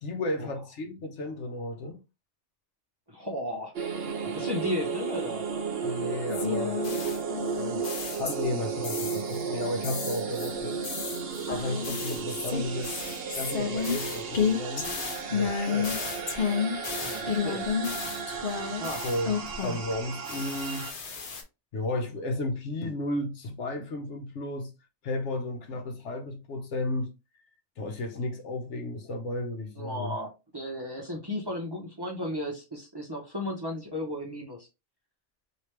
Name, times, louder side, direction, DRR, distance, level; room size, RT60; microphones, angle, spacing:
voice 1, 0.0-2.0 5.8-7.0 7.3-10.8 11.5-12.9 13.3-14.9 15.3-16.0 19.0-20.9 21.7-24.7 25.0-27.1 27.8-30.2, left 1 dB, 75° left, 1.1 m, -33 dB
voice 2, 3.1-3.7 4.3-5.4 17.0-17.7 18.8-19.0 29.8-34.7, left 1 dB, 25° right, 0.7 m, -34 dB
sound 1, 3.7-20.9, right 6 dB, 55° right, 0.9 m, -34 dB
sound 2, 6.3-8.6 8.8-9.4 9.8-19.9 20.2-21.4, left 6 dB, 50° left, 0.8 m, -32 dB
3.1 x 2.9 x 3.1 m
omnidirectional pair, 1.3 m